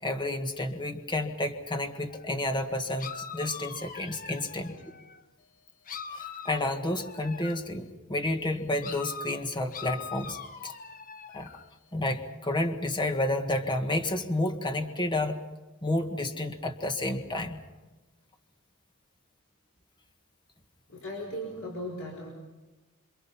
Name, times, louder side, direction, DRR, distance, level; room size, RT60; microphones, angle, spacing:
voice 1, 0.0-4.7 6.1-10.7 11.3-11.5 11.9-15.4 15.8-17.6, left 1 dB, 20° left, 5 dB, 1.6 m, -30 dB
sound 1, 2.1-2.3 3.0-5.2 5.9-7.7 8.8-11.7, left 6 dB, 40° left, 1.0 m, -42 dB
voice 2, 4.4-4.8 20.9-22.3, equal, 65° left, -1 dB, 5.1 m, -38 dB
27.5 x 26.5 x 5.6 m, 1.1 s
head